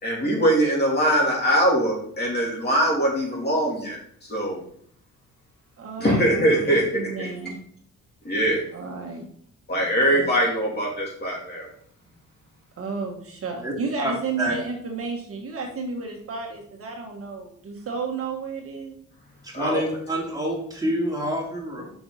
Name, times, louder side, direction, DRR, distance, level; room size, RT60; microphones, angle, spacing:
voice 1, 0.0-4.6 6.0-7.3 8.2-8.6 9.7-11.7 19.5-19.8, right 1 dB, 35° left, -2 dB, 3.0 m, -22 dB
voice 2, 5.8-7.6 8.7-9.2 10.1-10.3 12.8-19.0, right 4 dB, 50° right, 1 dB, 1.4 m, -32 dB
voice 3, 19.4-21.9, right 1 dB, 10° right, -3 dB, 2.8 m, -27 dB
6.1 x 5.7 x 4.0 m, 0.63 s
cardioid pair, 90°, 30 cm